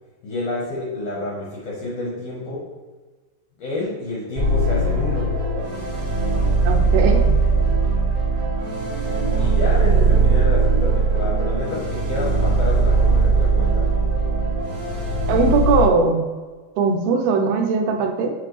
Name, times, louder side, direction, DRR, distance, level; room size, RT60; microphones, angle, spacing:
voice 1, 0.2-2.7 3.6-5.4 9.4-13.9, left 2 dB, 80° left, -5 dB, 1.4 m, -29 dB
sound 1, 4.4-15.9, right 3 dB, 45° right, 1.3 m, -19 dB
voice 2, 6.7-7.2 15.3-16.2 16.8-18.3, right 5 dB, 80° right, 3 dB, 2.4 m, -19 dB
7.4 x 4.0 x 3.2 m, 1.3 s
omnidirectional pair, 4.9 m